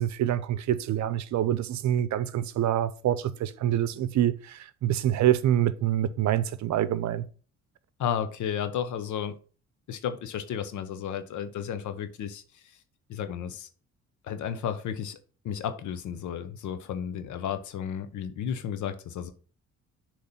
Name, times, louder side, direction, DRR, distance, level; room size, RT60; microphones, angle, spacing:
voice 1, 0.0-7.2, right 11 dB, 70° right, 0.7 m, -26 dB
voice 2, 8.0-9.3 9.9-12.4 13.1-13.7 14.2-15.2 15.4-19.3, left 8 dB, 75° left, 0.9 m, -33 dB
6.7 x 3.2 x 5.7 m
cardioid pair, 90°, 30 cm